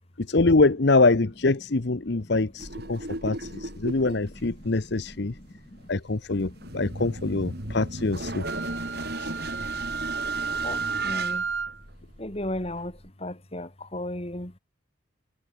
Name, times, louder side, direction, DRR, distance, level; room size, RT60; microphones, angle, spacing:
voice 1, 0.2-5.4 5.9-8.4 9.2-9.3, left 3 dB, 55° left, 0.8 m, -24 dB
sound 1, 2.6-13.1, right 1 dB, 50° right, 7.8 m, -37 dB
voice 2, 3.4-3.9 4.7-4.8 5.1-5.9 6.4-6.9 7.5-7.8 10.6-11.5 12.2-14.6, left 1 dB, 30° left, 2.5 m, -37 dB
Wind instrument woodwind instrument, 8.4-11.8, right 5 dB, 70° right, 6.4 m, -31 dB
head